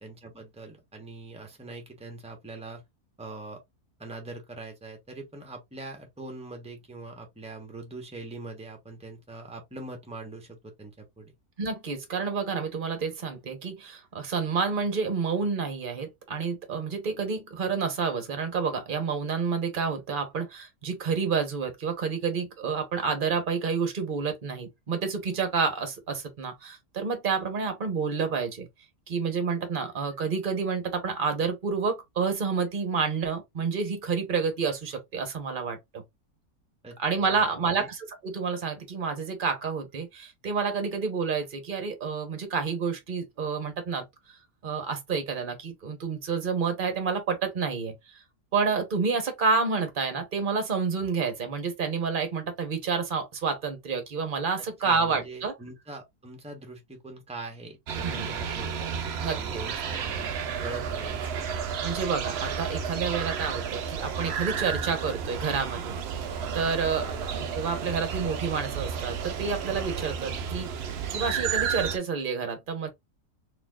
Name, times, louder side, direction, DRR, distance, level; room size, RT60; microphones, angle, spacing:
voice 1, 0.0-2.8 3.2-3.6 4.0-11.3 36.8-37.0 37.3-37.9 54.6-61.3 67.0-67.3, right 2 dB, 5° right, 0.9 m, -42 dB
voice 2, 11.6-28.7 29.1-36.0 37.0-48.2 48.5-55.5 58.0-58.3 59.2-59.6 61.8-65.9 66.5-72.9, right 5 dB, 35° right, 1.1 m, -29 dB
sound 1, 57.9-72.0, right 7 dB, 70° right, 0.6 m, -32 dB
4.1 x 3.0 x 2.4 m
omnidirectional pair, 1.7 m